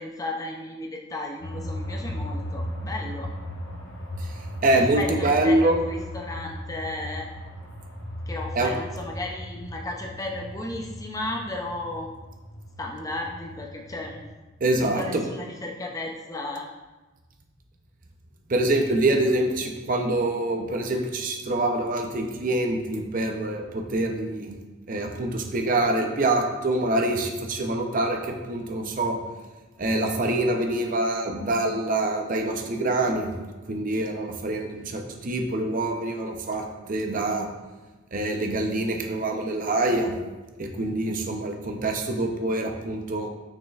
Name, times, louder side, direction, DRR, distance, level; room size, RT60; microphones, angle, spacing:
voice 1, 0.0-3.3 4.8-7.3 8.3-12.1 12.8-14.2 14.8-16.7, left 2 dB, 15° left, 1 dB, 0.5 m, -34 dB
sound 1, 1.4-14.3, equal, 70° left, 1.3 m, -36 dB
voice 2, 4.6-5.8 8.5-8.7 14.6-15.2 18.5-24.5 24.9-29.2 29.8-33.3 33.7-37.5 38.1-40.2 40.6-43.3, right 2 dB, 40° right, 2 dB, 0.6 m, -25 dB
6.5 x 6.2 x 2.4 m, 1.2 s
head